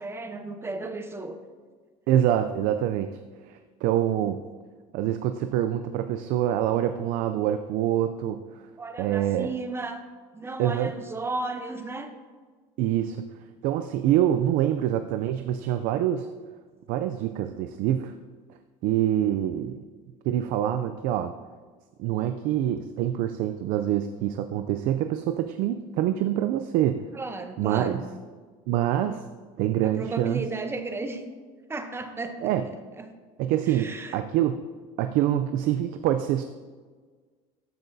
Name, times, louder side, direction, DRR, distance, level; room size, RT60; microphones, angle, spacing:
voice 1, 0.0-1.4 8.8-10.0 10.3-12.1 27.1-28.0 29.8-31.2 31.7-33.2 33.7-34.2, right 3 dB, 15° right, 7 dB, 0.8 m, -34 dB
voice 2, 2.1-3.1 3.4-4.4 4.9-8.4 9.0-9.5 10.6-10.9 12.8-13.2 13.6-16.3 16.9-18.1 18.8-19.8 20.2-21.3 22.0-27.0 27.6-28.0 28.7-29.2 29.6-30.4 32.4-32.6 33.4-34.6 35.0-36.4, right 11 dB, 65° right, 9 dB, 0.4 m, -25 dB
13.5 x 6.1 x 2.7 m, 1.5 s
supercardioid pair, 115°, 15 cm